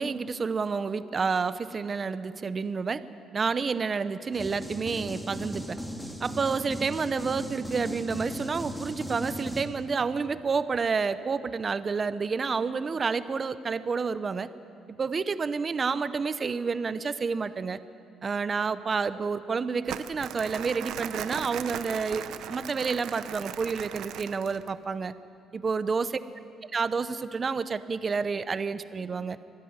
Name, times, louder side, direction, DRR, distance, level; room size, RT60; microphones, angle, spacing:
voice 1, 0.0-3.0 3.3-5.8 6.2-14.5 14.9-17.8 18.2-25.1 25.5-26.2 26.7-29.4, right 5 dB, 30° right, 14 dB, 0.8 m, -29 dB
sound 1, 4.3-9.7, equal, ahead, 2.2 m, -37 dB
Crumpling crinkling, 19.9-24.7, right 10 dB, 85° right, 0.9 m, -38 dB
25.0 x 16.0 x 9.5 m, 2.5 s
cardioid pair, 140°, 0 cm